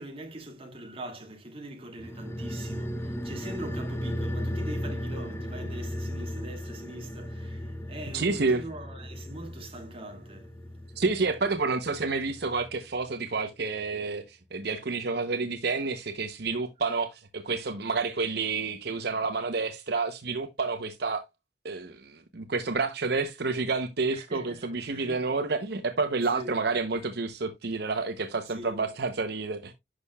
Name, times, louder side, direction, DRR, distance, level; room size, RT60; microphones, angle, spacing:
voice 1, 0.0-10.5 24.1-25.4 26.3-26.6 28.5-28.9, right 1 dB, 30° right, 2.1 m, -42 dB
sound 1, 2.0-12.9 13.1-13.2, equal, 15° left, 0.8 m, -36 dB
voice 2, 8.1-8.6 11.0-21.2 21.6-29.7, right 4 dB, 60° right, 0.8 m, -29 dB
11.0 x 6.5 x 2.3 m
head